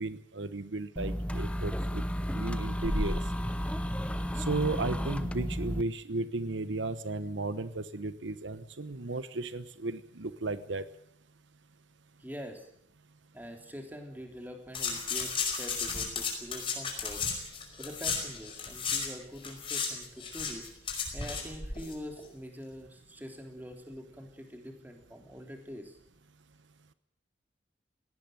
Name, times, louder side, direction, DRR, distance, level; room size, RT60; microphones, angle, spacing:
voice 1, 0.0-2.0 2.3-3.2 4.4-10.8, right 3 dB, 80° right, 13 dB, 1.1 m, -34 dB
sound 1, 1.0-5.8, equal, 5° left, 0.9 m, -32 dB
voice 2, 12.2-12.7 13.3-17.2 17.8-20.7 21.1-26.0, equal, 10° right, 4 dB, 3.4 m, -44 dB
sound 2, 14.7-19.1 19.4-21.9 22.2-22.3, left 5 dB, 30° left, 5.1 m, -34 dB
19.0 x 17.5 x 9.1 m, 0.69 s
head